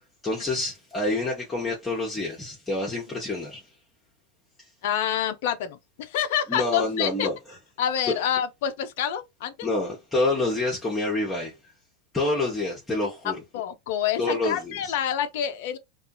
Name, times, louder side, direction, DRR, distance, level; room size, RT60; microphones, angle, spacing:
voice 1, 0.2-3.6 6.5-7.3 8.1-8.2 9.6-11.5 12.1-13.3 14.2-14.9, left 2 dB, 15° left, 1.0 m, -27 dB
voice 2, 4.8-7.3 7.8-9.7 13.2-15.8, left 9 dB, 55° left, 0.4 m, -27 dB
2.4 x 2.3 x 2.7 m
figure-of-eight pair, 85°, 0 cm